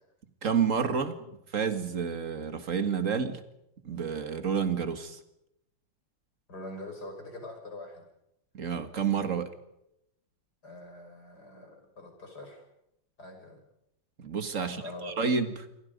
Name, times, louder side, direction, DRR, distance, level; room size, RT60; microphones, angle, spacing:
voice 1, 0.4-1.2 1.5-3.4 3.8-5.2 8.5-9.5 14.2-15.5, right 6 dB, 40° right, 8 dB, 2.2 m, -29 dB
voice 2, 6.5-8.0 10.6-12.6 13.2-13.6 14.6-15.1, left 1 dB, 55° left, 3 dB, 6.5 m, -43 dB
28.5 x 23.5 x 5.3 m, 0.82 s
omnidirectional pair, 2.1 m